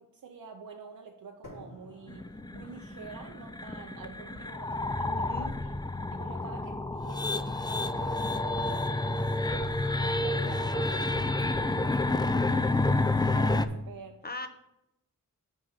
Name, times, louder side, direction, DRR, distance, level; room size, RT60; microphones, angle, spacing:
voice 1, 0.0-5.8 6.1-9.7 10.1-14.2, right 5 dB, 85° right, 1 dB, 0.7 m, -48 dB
sound 1, 1.4-9.5, left 1 dB, 65° left, 3.0 m, -56 dB
sound 2, 2.1-13.7, left 2 dB, 15° left, 0.4 m, -29 dB
voice 2, 5.1-5.5 14.2-14.5, left 3 dB, 30° left, 7 dB, 0.9 m, -39 dB
6.0 x 5.3 x 6.5 m, 0.85 s
wide cardioid pair, 65°, 33 cm